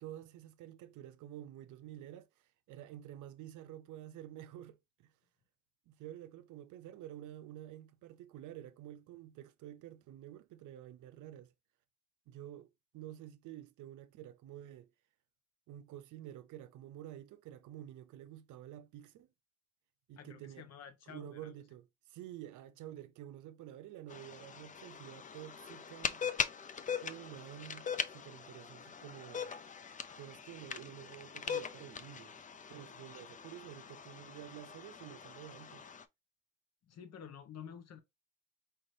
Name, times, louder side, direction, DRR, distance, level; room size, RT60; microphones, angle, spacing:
voice 1, 0.0-5.1 5.9-11.5 12.3-14.9 15.7-19.3 20.1-20.7 21.1-26.3 27.0-29.5 30.2-32.4 32.7-35.9, right 12 dB, 80° right, 0.6 m, -50 dB
voice 2, 20.2-21.5 36.8-38.0, left 8 dB, 60° left, 0.9 m, -50 dB
sound 1, 24.1-36.0, left 7 dB, 25° left, 0.4 m, -42 dB
4.7 x 3.2 x 2.6 m
cardioid pair, 90°, 30 cm